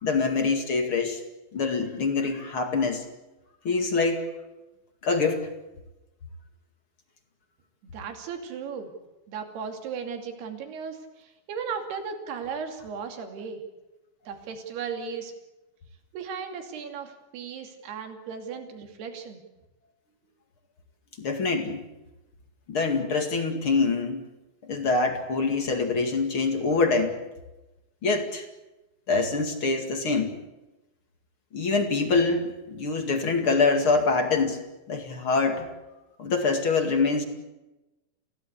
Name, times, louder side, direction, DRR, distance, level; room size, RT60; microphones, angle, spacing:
voice 1, 0.0-1.2 1.5-3.0 3.6-4.3 5.0-5.5 21.2-21.8 22.7-24.3 24.6-27.2 28.0-28.4 29.1-30.3 31.5-34.6 34.9-35.7 36.2-37.2, left 4 dB, 45° left, 5 dB, 1.9 m, -25 dB
voice 2, 7.8-8.9 9.3-13.6 14.3-15.3 16.1-19.4, right 6 dB, 60° right, 5 dB, 4.4 m, -36 dB
28.5 x 16.5 x 8.4 m, 1.0 s
omnidirectional pair, 5.5 m